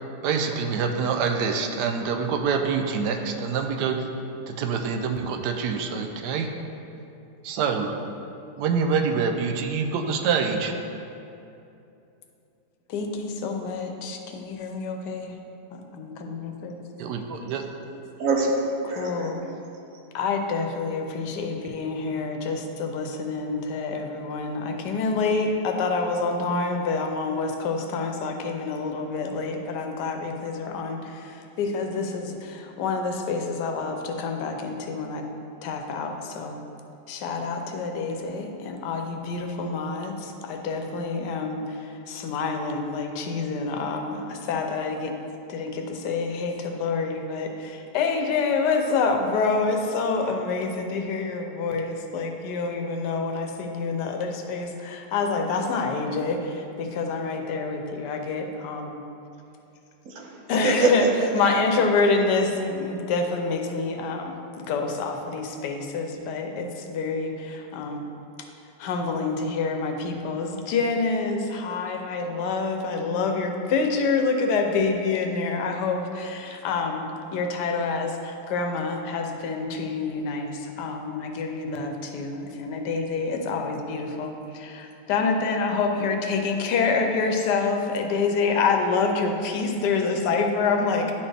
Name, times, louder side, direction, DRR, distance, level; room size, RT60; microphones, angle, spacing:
voice 1, 0.2-4.1 4.5-6.5 7.4-7.9 8.6-10.7 17.0-17.6, right 5 dB, 85° right, 5 dB, 1.2 m, -26 dB
voice 2, 12.9-15.4 15.7-16.8 18.8-19.4 20.1-35.3 35.6-36.6 37.1-45.2 45.5-59.0 60.5-68.1 68.8-91.1, left 4 dB, 85° left, 4 dB, 1.3 m, -27 dB
voice 3, 18.2-19.5 60.1-61.1, right 2 dB, 60° right, 0 dB, 1.0 m, -24 dB
9.9 x 4.3 x 3.3 m, 2.7 s
omnidirectional pair, 1.8 m